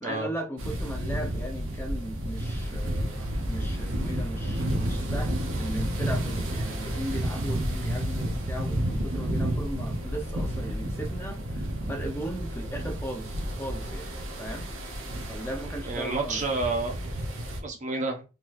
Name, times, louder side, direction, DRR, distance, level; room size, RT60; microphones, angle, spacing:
voice 1, 0.0-14.1 14.4-14.7 15.3-16.4, right 1 dB, 10° left, 2 dB, 0.7 m, -37 dB
sound 1, 0.6-17.6, equal, 70° right, 0.8 m, -31 dB
voice 2, 15.8-17.0 17.6-18.2, right 3 dB, 35° right, 2 dB, 0.5 m, -29 dB
3.8 x 2.9 x 2.6 m, 0.30 s
head